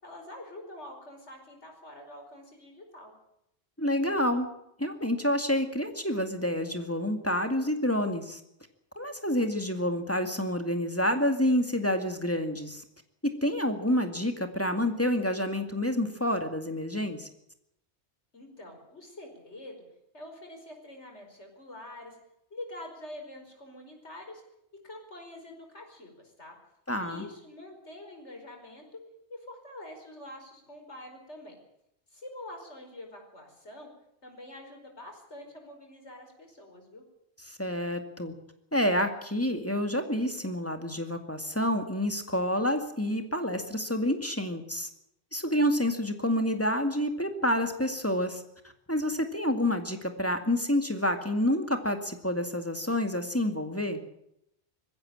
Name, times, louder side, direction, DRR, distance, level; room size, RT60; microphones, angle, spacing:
voice 1, 0.0-3.1 18.3-19.8 20.1-22.2 22.5-24.4 24.8-26.6 27.0-29.0 29.3-31.6 32.1-33.9 34.2-37.0, left 1 dB, 85° left, 3 dB, 5.3 m, -46 dB
voice 2, 3.8-4.5 4.8-8.4 9.0-12.8 13.2-17.3 26.9-27.2 37.5-38.4 38.7-44.9 45.3-48.4 48.9-54.0, left 1 dB, 10° left, 6 dB, 2.1 m, -28 dB
20.5 x 15.5 x 8.8 m, 0.78 s
omnidirectional pair, 1.1 m